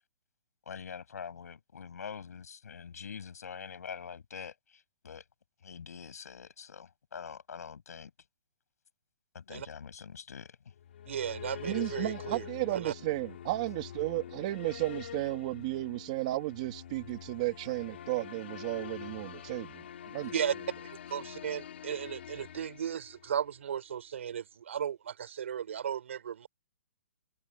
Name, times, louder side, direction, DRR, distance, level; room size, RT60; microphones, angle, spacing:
voice 1, 0.7-5.2 5.6-8.1 9.3-10.7, left 7 dB, 90° left, 7.2 m, -45 dB
sound 1, 10.8-23.6, left 9 dB, 50° left, 4.0 m, -45 dB
voice 2, 11.1-12.4 12.7-12.9 20.3-20.5 20.8-26.5, right 8 dB, 55° right, 5.7 m, -35 dB
voice 3, 11.6-19.8 20.1-20.3, right 18 dB, 25° right, 2.1 m, -34 dB
hypercardioid pair, 180°, 8 cm